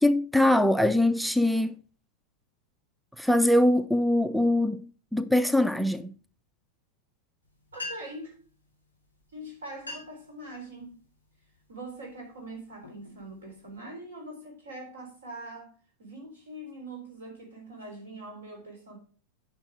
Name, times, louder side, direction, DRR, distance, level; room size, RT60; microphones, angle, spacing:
voice 1, 0.0-1.8 3.2-6.1, left 1 dB, ahead, 0.4 m, -23 dB
sound 1, 7.4-7.5 7.7-8.3 9.2-9.3 9.7-10.3 10.8-11.1 11.7-12.0 12.5-13.8, left 2 dB, 85° right, 3.0 m, -42 dB
voice 2, 7.7-8.4 9.3-11.0 11.7-15.7 16.0-19.0, right 1 dB, 70° right, 3.8 m, -43 dB
9.6 x 5.8 x 4.8 m
figure-of-eight pair, 90°, 0 cm